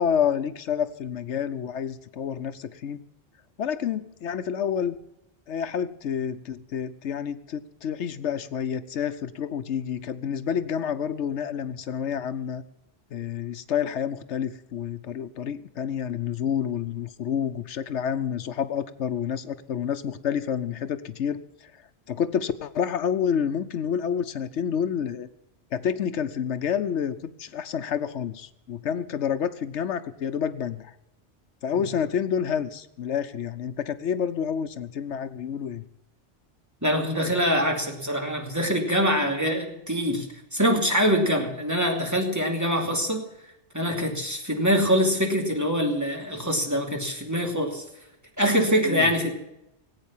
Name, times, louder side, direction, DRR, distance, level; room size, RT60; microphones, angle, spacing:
voice 1, 0.0-3.0 3.6-5.0 5.5-12.6 13.1-21.8 22.1-25.3 25.7-31.0 31.6-35.8 48.8-49.1, left 8 dB, 80° left, 11 dB, 1.1 m, -29 dB
voice 2, 36.8-43.3 43.7-47.8 48.4-49.3, equal, 15° right, 1 dB, 2.7 m, -24 dB
18.5 x 8.8 x 7.2 m, 0.87 s
omnidirectional pair, 1.2 m